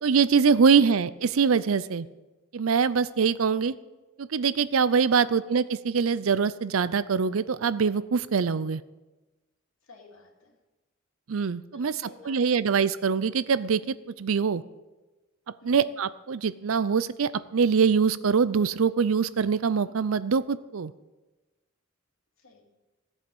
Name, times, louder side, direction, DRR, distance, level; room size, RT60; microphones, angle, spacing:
voice 1, 0.0-2.1 2.5-3.7 4.2-8.8 11.3-11.9 12.3-13.8 14.2-14.6 15.6-20.9, right 6 dB, 85° right, 16 dB, 0.5 m, -23 dB
voice 2, 1.7-2.1 5.1-5.5 9.8-10.6 11.7-12.6 15.6-15.9 22.4-22.6, left 3 dB, 85° left, 0 dB, 2.6 m, -52 dB
16.5 x 8.2 x 5.4 m, 1.1 s
head